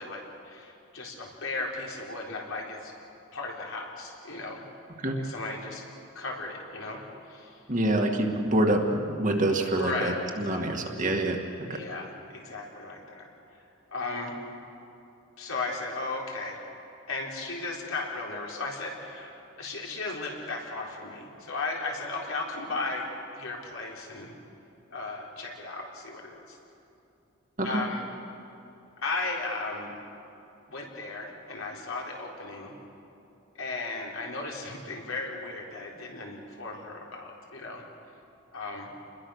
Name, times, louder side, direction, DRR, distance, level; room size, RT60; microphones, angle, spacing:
voice 1, 0.0-2.9 3.3-4.6 5.1-5.9 6.1-7.0 7.3-7.6 9.7-10.7 11.7-13.6 13.9-14.4 15.4-16.6 17.1-23.1 23.4-24.4 24.9-26.6 27.6-28.1 29.0-29.9 30.7-32.7 33.5-37.8 38.5-38.9, left 3 dB, 70° left, -1 dB, 4.0 m, -36 dB
voice 2, 7.7-11.8 27.6-27.7, right 1 dB, 35° right, 2 dB, 2.0 m, -26 dB
29.0 x 21.5 x 6.5 m, 2.8 s
head